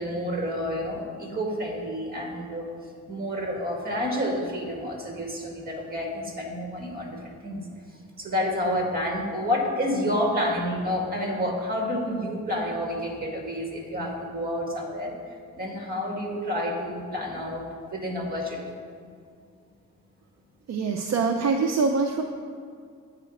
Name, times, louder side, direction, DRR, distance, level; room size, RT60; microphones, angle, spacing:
voice 1, 0.0-2.7 3.1-7.7 8.2-15.1 15.5-18.6, equal, 30° right, 0 dB, 1.8 m, -29 dB
voice 2, 20.7-22.2, right 4 dB, 55° right, 2 dB, 0.6 m, -24 dB
8.9 x 5.0 x 7.6 m, 2.2 s
wide cardioid pair, 145°, 32 cm